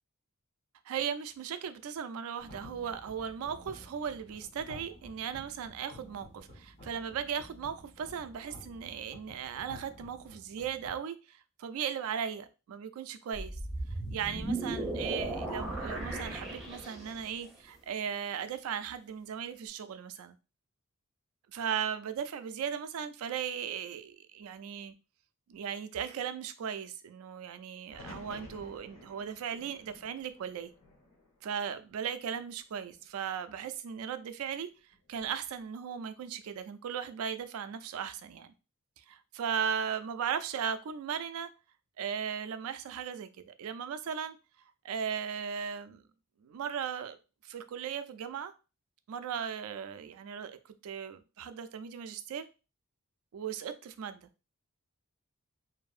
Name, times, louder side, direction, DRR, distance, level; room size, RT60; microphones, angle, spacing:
voice 1, 0.9-13.6 14.1-20.4 21.5-24.9 25.5-30.7 31.4-34.7 35.1-38.5 39.1-41.5 42.0-44.4 44.8-46.0 46.4-47.2 47.4-48.5 49.1-50.6 50.8-52.5 53.3-54.3, right 7 dB, 70° right, 0.3 m, -37 dB
sound 1, 2.4-11.0, left 1 dB, 50° left, 1.3 m, -52 dB
sound 2, 13.3-17.3, right 1 dB, ahead, 0.7 m, -36 dB
sound 3, 27.9-31.9 32.3-33.1 34.9-35.4, left 2 dB, 70° left, 1.2 m, -53 dB
2.7 x 2.5 x 2.4 m
head